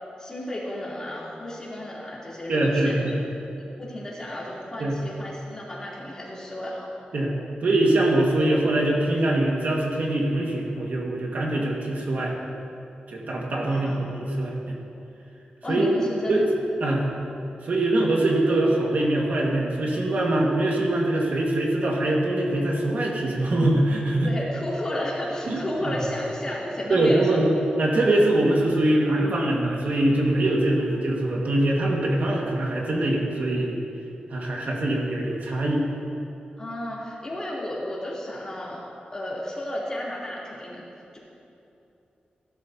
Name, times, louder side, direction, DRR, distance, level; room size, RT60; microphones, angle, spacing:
voice 1, 0.2-3.0 3.6-6.9 13.6-14.0 15.6-16.5 24.2-27.4 36.6-38.8 39.1-40.8, left 1 dB, 25° left, -7 dB, 3.1 m, -32 dB
voice 2, 2.5-3.2 4.8-4.9 7.1-7.3 7.6-12.4 13.1-14.8 15.7-16.0 16.3-16.4 16.8-17.1 17.6-24.3 25.5-26.0 26.9-27.5 27.8-33.8 34.3-35.9, right 1 dB, 65° right, -2 dB, 1.7 m, -23 dB
17.0 x 11.5 x 2.8 m, 2.8 s
wide cardioid pair, 140°, 3 cm